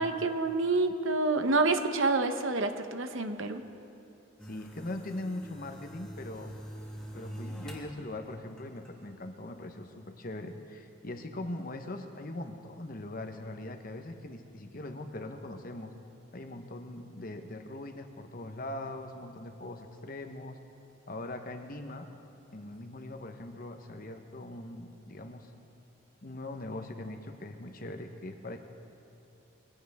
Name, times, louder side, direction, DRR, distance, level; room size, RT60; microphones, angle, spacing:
voice 1, 0.0-3.6, right 3 dB, 65° right, 8 dB, 0.9 m, -28 dB
voice 2, 4.4-6.5 7.1-15.9 16.3-20.6 21.1-22.1 22.5-25.5 26.2-28.6, left 1 dB, 40° left, 6 dB, 1.0 m, -41 dB
sound 1, 4.4-7.9 8.3-9.1, equal, 5° left, 2.0 m, -44 dB
23.5 x 16.0 x 3.5 m, 2.8 s
head